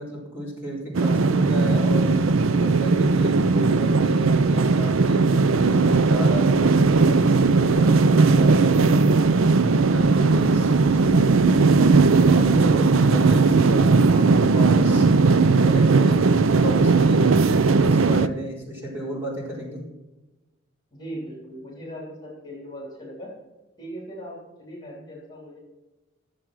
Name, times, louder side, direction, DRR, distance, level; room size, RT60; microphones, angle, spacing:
voice 1, 0.0-9.0 9.9-11.5 12.1-15.1 15.6-19.8, equal, 10° right, -6 dB, 4.5 m, -33 dB
sound 1, 0.9-18.3, right 4 dB, 90° right, 0.6 m, -18 dB
voice 2, 20.9-23.3 23.8-25.6, equal, 20° left, -4 dB, 3.4 m, -39 dB
13.0 x 7.7 x 6.1 m, 1.1 s
head